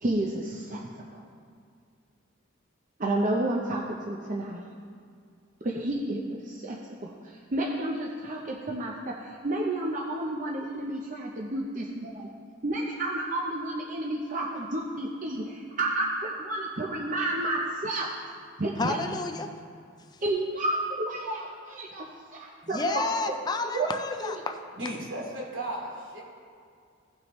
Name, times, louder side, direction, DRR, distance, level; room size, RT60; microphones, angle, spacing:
voice 1, 0.0-0.8 1.1-1.2 3.0-4.6 5.6-12.3 12.6-18.1 18.6-19.0 20.2-22.9 23.3-23.4 23.7-23.9 24.2-24.3, right 1 dB, 40° right, -2 dB, 0.7 m, -31 dB
voice 2, 18.8-19.5 22.7-24.6, left 3 dB, 20° left, 6 dB, 0.4 m, -31 dB
voice 3, 24.8-26.2, right 1 dB, 75° right, -4 dB, 2.5 m, -35 dB
16.5 x 6.3 x 3.1 m, 2.2 s
head